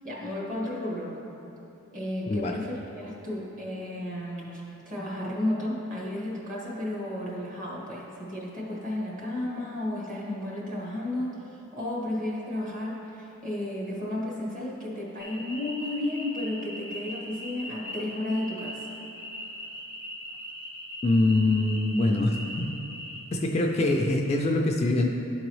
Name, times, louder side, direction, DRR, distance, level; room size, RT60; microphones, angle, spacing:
voice 1, 0.0-1.2 1.9-11.4 11.7-18.8, left 1 dB, 35° right, -5 dB, 1.5 m, -33 dB
voice 2, 2.3-2.6 21.0-22.7 23.3-25.1, left 2 dB, 30° left, 1 dB, 0.3 m, -24 dB
sound 1, 15.2-23.2, equal, 10° right, 0.9 m, -40 dB
11.5 x 3.9 x 3.1 m, 2.8 s
head